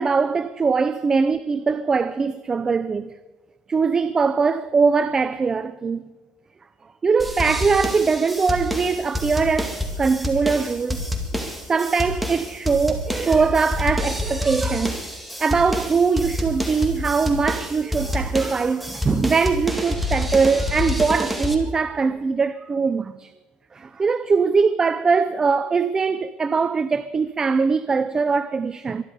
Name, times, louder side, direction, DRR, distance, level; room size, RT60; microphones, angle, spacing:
voice 1, 0.0-3.1 3.7-6.0 7.0-11.0 11.3-11.4 11.7-15.0 15.4-23.3 23.7-29.0, right 5 dB, 20° right, 0.5 m, -21 dB
sound 1, 7.2-21.6, left 1 dB, ahead, 2.1 m, -28 dB
23.5 x 11.0 x 5.0 m
cardioid pair, 140°, 3 cm